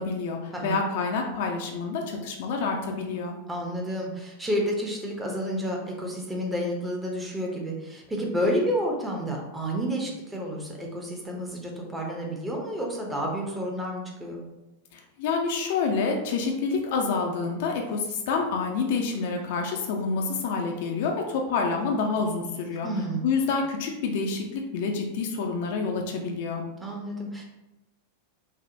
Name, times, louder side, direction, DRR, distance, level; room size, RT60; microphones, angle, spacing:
voice 1, 0.0-3.4 14.9-22.9 23.2-26.6, left 4 dB, 50° left, 2 dB, 0.4 m, -28 dB
voice 2, 3.5-14.4 22.8-23.3 26.8-27.4, equal, 10° right, -1 dB, 0.6 m, -30 dB
3.3 x 2.1 x 2.6 m, 1.0 s
figure-of-eight pair, 90°, 0 cm